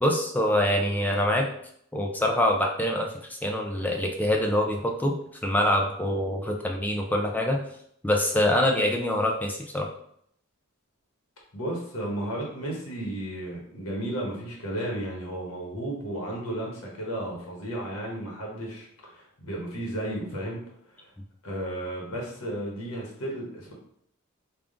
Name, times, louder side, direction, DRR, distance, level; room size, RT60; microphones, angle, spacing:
voice 1, 0.0-1.5 1.9-5.1 5.4-7.6 8.0-9.9, left 1 dB, 10° left, 1 dB, 0.4 m, -25 dB
voice 2, 11.5-20.6 20.9-21.1 21.4-23.7, right 1 dB, 85° left, -2 dB, 1.2 m, -33 dB
3.5 x 2.4 x 3.7 m, 0.69 s
head